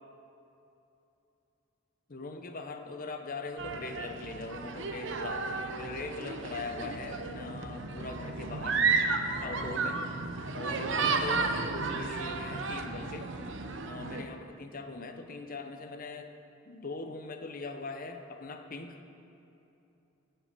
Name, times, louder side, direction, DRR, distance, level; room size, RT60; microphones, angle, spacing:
voice 1, 2.1-8.8 9.4-10.0 10.5-13.3 13.8-16.3 16.7-19.0, left 3 dB, 45° left, 6 dB, 0.9 m, -41 dB
sound 1, 3.6-14.2, right 4 dB, 70° right, 0.8 m, -33 dB
16.0 x 5.7 x 6.8 m, 2.9 s
head